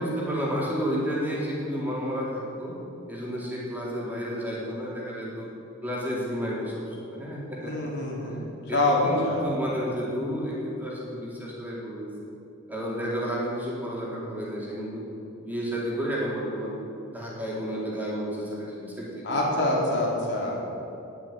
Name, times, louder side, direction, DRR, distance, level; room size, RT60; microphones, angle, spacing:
voice 1, 0.0-2.8 3.1-5.5 5.8-7.9 8.2-12.1 12.7-15.0 15.4-16.7 17.1-19.6, equal, 10° right, -6 dB, 4.2 m, -31 dB
voice 2, 7.6-8.4 8.7-9.5 19.2-20.6, left 2 dB, 60° left, -4 dB, 4.0 m, -25 dB
20.0 x 7.4 x 9.2 m, 2.9 s
head